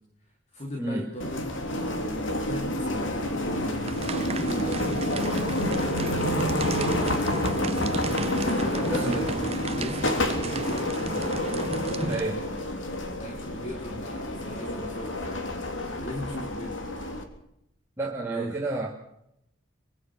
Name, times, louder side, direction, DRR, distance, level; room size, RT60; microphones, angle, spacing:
voice 1, 0.5-7.8 8.4-12.2 13.2-16.7 18.3-18.6, equal, 35° left, 1 dB, 3.0 m, -38 dB
sound 1, 1.2-17.2, left 1 dB, 70° left, 3.3 m, -29 dB
sound 2, 3.8-12.3, right 2 dB, 30° right, 1.0 m, -34 dB
voice 2, 8.9-9.4 12.1-12.4 18.0-18.9, right 2 dB, 15° right, -4 dB, 2.6 m, -30 dB
25.0 x 24.0 x 6.2 m, 0.78 s
head